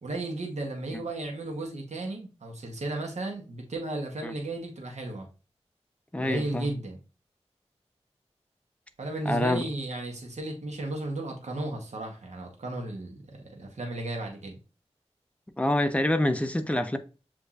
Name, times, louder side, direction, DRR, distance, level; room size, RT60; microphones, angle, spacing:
voice 1, 0.0-5.3 6.2-7.0 9.0-14.6, right 2 dB, 90° right, 1.0 m, -34 dB
voice 2, 6.1-6.7 9.3-9.6 15.6-17.0, left 1 dB, 10° left, 0.6 m, -26 dB
7.2 x 2.5 x 2.4 m
wide cardioid pair, 45°, 11 cm